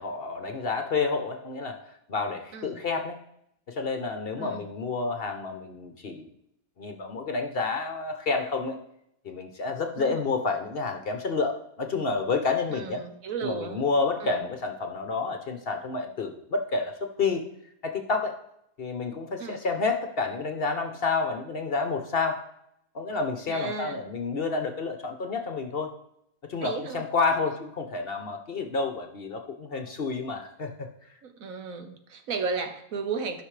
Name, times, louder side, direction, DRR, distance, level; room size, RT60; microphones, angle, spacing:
voice 1, 0.0-3.2 3.7-6.3 6.8-8.8 9.2-13.0 13.4-17.4 17.8-18.4 18.8-22.5 22.9-25.9 26.5-30.9, left 4 dB, 50° left, 6 dB, 0.9 m, -29 dB
voice 2, 12.7-13.8 14.2-14.4 19.4-19.6 23.5-24.0 26.6-27.1 31.2-33.4, right 5 dB, 70° right, 7 dB, 1.3 m, -34 dB
13.5 x 5.8 x 3.2 m, 0.77 s
omnidirectional pair, 1.5 m